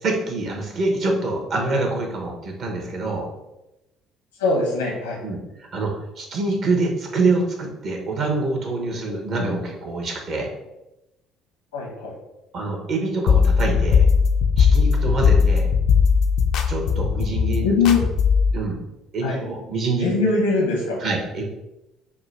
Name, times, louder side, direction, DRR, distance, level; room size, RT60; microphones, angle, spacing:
voice 1, 0.0-3.3 5.2-10.5 12.5-14.0 14.6-15.7 16.7-17.7 18.5-18.8 19.1-20.1 21.0-21.4, right 3 dB, 55° right, 1 dB, 1.0 m, -25 dB
voice 2, 4.4-5.2 11.7-12.1 17.6-18.0 19.2-19.4 20.0-21.0, left 4 dB, 85° left, -2 dB, 1.0 m, -21 dB
sound 1, 13.3-18.5, left 6 dB, 65° left, 0.4 m, -18 dB
3.7 x 2.3 x 4.4 m, 0.94 s
hypercardioid pair, 55°, 0 cm